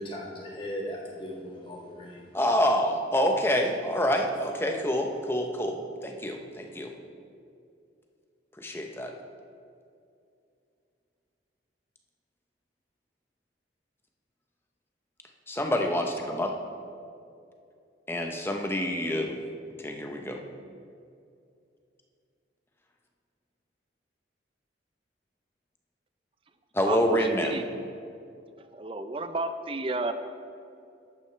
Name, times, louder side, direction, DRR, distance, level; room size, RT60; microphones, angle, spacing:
voice 1, 0.0-2.3, equal, 30° left, -3 dB, 1.6 m, -38 dB
voice 2, 2.3-6.9 8.6-9.1 15.5-16.5 18.1-19.4 19.8-20.4 26.7-27.6, equal, 15° left, 3 dB, 0.7 m, -27 dB
voice 3, 26.9-27.6 28.7-30.1, right 2 dB, 30° right, 10 dB, 0.4 m, -32 dB
11.5 x 8.7 x 3.3 m, 2.5 s
head